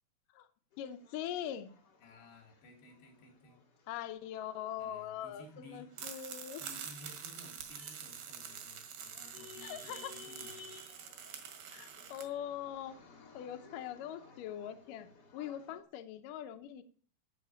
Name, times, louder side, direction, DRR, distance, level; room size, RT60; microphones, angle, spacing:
sound 1, 0.7-15.8, left 4 dB, 45° left, 1.3 m, -58 dB
voice 1, 0.8-1.8 3.9-6.6 9.6-10.1 11.7-13.0 13.3-16.8, left 10 dB, 70° left, 8 dB, 2.3 m, -42 dB
voice 2, 2.0-3.6 4.8-5.9 6.6-10.8, left 1 dB, 90° left, 3 dB, 5.2 m, -56 dB
sound 2, 6.0-12.2, right 8 dB, 75° right, 3.8 m, -46 dB
14.5 x 6.0 x 8.6 m, 0.43 s
omnidirectional pair, 4.7 m